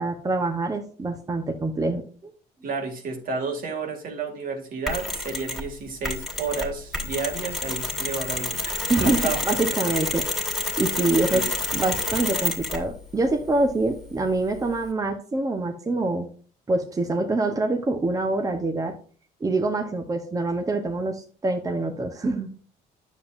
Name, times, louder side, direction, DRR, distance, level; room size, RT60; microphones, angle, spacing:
voice 1, 0.0-2.3 8.9-9.2 9.5-16.3 16.7-19.0 19.4-22.5, right 2 dB, 20° right, 4 dB, 0.9 m, -25 dB
voice 2, 2.6-9.4 11.3-11.4, right 4 dB, 60° right, 3 dB, 2.2 m, -31 dB
Mechanisms, 4.9-5.7 6.0-12.9, left 2 dB, ahead, 2.3 m, -28 dB
9.3 x 7.1 x 2.5 m, 0.43 s
cardioid pair, 110°, 17 cm